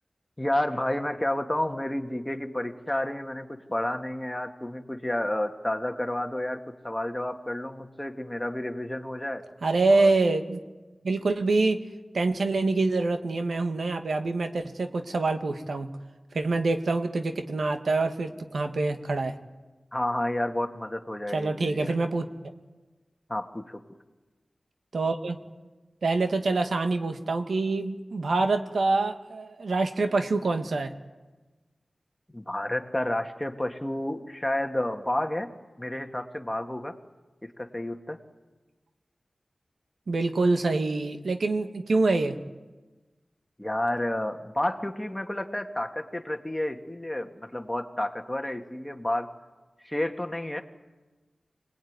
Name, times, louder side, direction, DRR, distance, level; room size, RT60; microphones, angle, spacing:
voice 1, 0.4-9.4 9.9-10.1 19.9-22.0 23.3-23.8 32.3-35.5 35.8-37.0 37.4-38.2 43.6-49.3 49.8-50.6, left 1 dB, 15° left, 5 dB, 1.9 m, -30 dB
voice 2, 9.6-10.6 11.0-11.8 12.1-15.9 16.3-19.4 21.3-22.3 24.9-25.4 26.0-30.9 40.1-42.4, right 3 dB, 90° right, 6 dB, 1.6 m, -25 dB
25.5 x 20.0 x 9.6 m, 1.2 s
wide cardioid pair, 65°, 0 cm